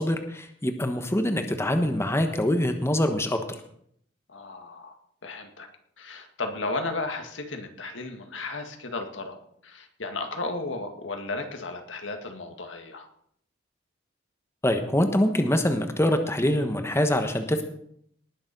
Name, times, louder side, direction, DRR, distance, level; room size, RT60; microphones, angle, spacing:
voice 1, 0.0-3.4 14.6-17.6, left 1 dB, 15° left, 6 dB, 1.1 m, -24 dB
voice 2, 4.3-5.0 5.2-5.7 6.0-9.4 9.6-13.1, left 3 dB, 90° left, 5 dB, 1.9 m, -34 dB
19.0 x 7.1 x 5.3 m, 0.67 s
head